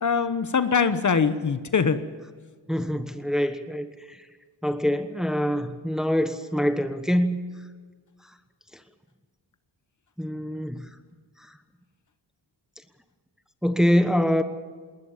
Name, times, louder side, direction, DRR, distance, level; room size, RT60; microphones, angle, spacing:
voice 1, 0.0-2.0, left 6 dB, 40° left, 11 dB, 1.1 m, -22 dB
voice 2, 2.7-4.2 4.6-7.4 10.2-10.8 13.6-14.4, equal, ahead, 9 dB, 1.2 m, -24 dB
20.5 x 20.0 x 7.3 m, 1.5 s
wide cardioid pair, 130°, 44 cm